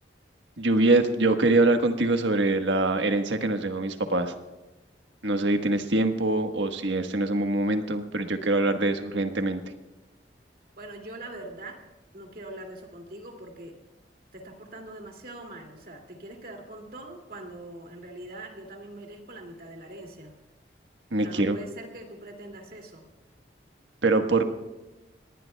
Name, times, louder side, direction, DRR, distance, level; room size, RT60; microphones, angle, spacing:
voice 1, 0.6-4.3 5.2-9.6 21.1-21.6 24.0-24.4, right 2 dB, 85° right, 6 dB, 1.4 m, -24 dB
voice 2, 10.8-11.8 12.1-13.8 14.3-20.3 21.2-23.0, right 1 dB, 55° right, 2 dB, 2.5 m, -42 dB
25.5 x 19.0 x 2.3 m, 1.1 s
head